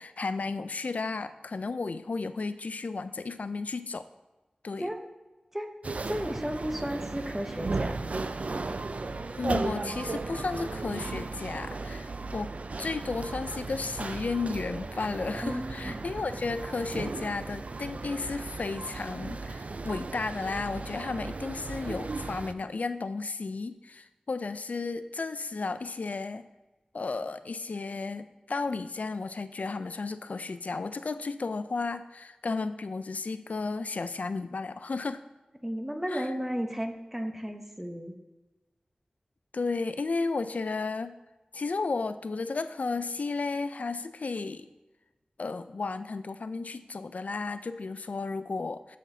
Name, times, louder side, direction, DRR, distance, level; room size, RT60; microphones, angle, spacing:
voice 1, 0.0-4.1 4.6-4.9 9.4-12.5 12.8-26.5 26.9-35.2 36.1-36.3 39.5-41.2 41.5-44.7 45.4-49.0, left 3 dB, 70° left, 12 dB, 0.4 m, -33 dB
sound 1, 5.8-22.5, right 3 dB, 60° right, 0.4 m, -36 dB
voice 2, 6.1-8.0 15.4-16.1 35.6-38.1, equal, 10° right, 4 dB, 0.9 m, -33 dB
13.0 x 5.8 x 2.7 m, 1.1 s
wide cardioid pair, 70°, 3 cm